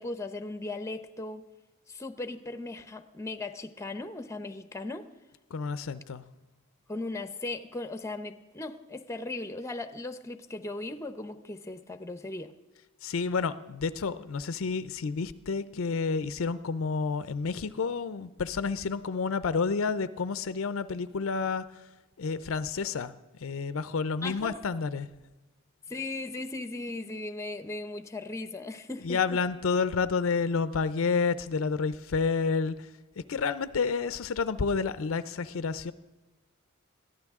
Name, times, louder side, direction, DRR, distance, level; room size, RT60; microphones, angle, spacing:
voice 1, 0.0-1.5 1.9-5.1 6.9-12.5 24.2-24.6 25.9-29.4, left 2 dB, 15° left, 10 dB, 0.7 m, -37 dB
voice 2, 5.5-6.2 13.0-21.7 22.2-23.1 23.4-25.1 29.0-32.9 33.3-35.9, left 5 dB, 65° left, 14 dB, 0.5 m, -30 dB
21.5 x 14.5 x 3.6 m, 1.1 s
head